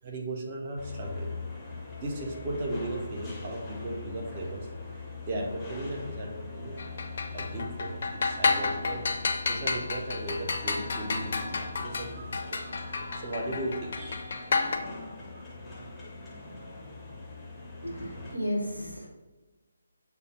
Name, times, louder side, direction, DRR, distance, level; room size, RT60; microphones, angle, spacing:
voice 1, 0.0-6.9 7.3-14.3 15.3-15.4, right 1 dB, 30° right, 0 dB, 0.7 m, -37 dB
sound 1, 0.8-18.4, left 3 dB, 5° left, 0.6 m, -42 dB
sound 2, 6.8-14.8, left 4 dB, 45° left, 0.4 m, -31 dB
voice 2, 17.8-19.1, equal, 85° right, -1 dB, 1.2 m, -33 dB
6.6 x 2.2 x 3.0 m, 1.2 s
figure-of-eight pair, 145°, 0 cm